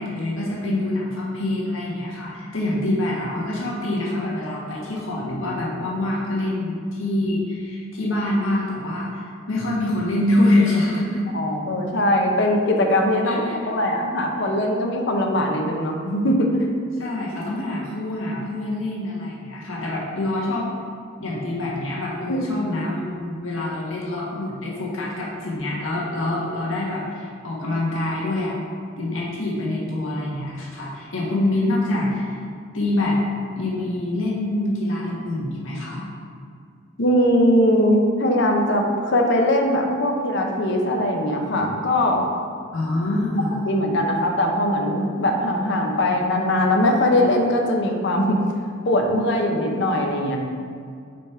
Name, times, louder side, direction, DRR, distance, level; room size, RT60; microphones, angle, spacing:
voice 1, 0.0-11.2 13.2-13.9 17.0-20.7 21.2-28.5 29.0-32.4 32.7-33.2 33.6-36.1 42.7-43.6, left 1 dB, 85° left, -5 dB, 1.6 m, -25 dB
voice 2, 11.3-16.6 22.3-22.4 37.0-42.2 43.7-48.4 48.8-50.4, left 1 dB, 65° left, 2 dB, 0.9 m, -21 dB
5.2 x 5.2 x 4.5 m, 2.2 s
head